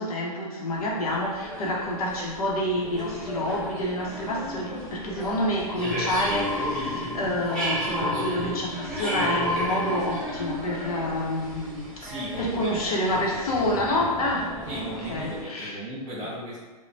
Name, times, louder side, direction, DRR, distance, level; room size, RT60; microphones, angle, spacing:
voice 1, 0.0-11.9 12.4-15.8, left 1 dB, 75° left, -2 dB, 0.7 m, -28 dB
sound 1, 0.7-15.4, left 1 dB, 5° left, 0.7 m, -33 dB
voice 2, 12.0-13.6 14.6-16.6, right 1 dB, 20° right, -8 dB, 1.2 m, -36 dB
3.1 x 2.1 x 2.5 m, 1.3 s
hypercardioid pair, 145°, 19 cm